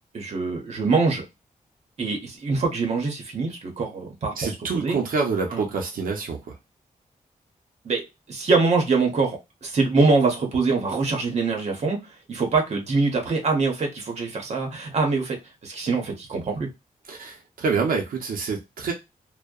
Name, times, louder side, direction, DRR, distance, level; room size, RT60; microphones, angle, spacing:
voice 1, 0.1-1.2 2.0-5.0 5.5-5.6 7.8-8.0 8.3-12.0 12.3-15.4 15.6-16.7, right 4 dB, 50° right, 2 dB, 0.8 m, -24 dB
voice 2, 4.4-6.4 17.1-18.9, right 4 dB, 85° right, 1 dB, 0.6 m, -26 dB
2.6 x 2.1 x 2.3 m, 0.22 s
wide cardioid pair, 175°, 14 cm